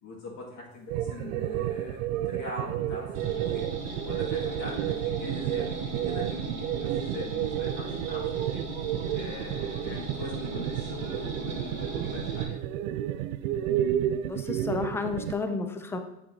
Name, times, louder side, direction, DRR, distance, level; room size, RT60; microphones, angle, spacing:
voice 1, 0.0-3.7 4.0-8.7 9.1-12.6, left 2 dB, 40° left, -6 dB, 2.2 m, -41 dB
sound 1, 0.9-15.3, right 12 dB, 60° right, 0.6 m, -31 dB
sound 2, 3.1-12.4, right 1 dB, 35° right, 2.8 m, -39 dB
voice 2, 14.2-16.0, left 3 dB, 5° left, 7 dB, 0.3 m, -31 dB
8.3 x 6.1 x 2.8 m, 0.90 s
hypercardioid pair, 90°, 46 cm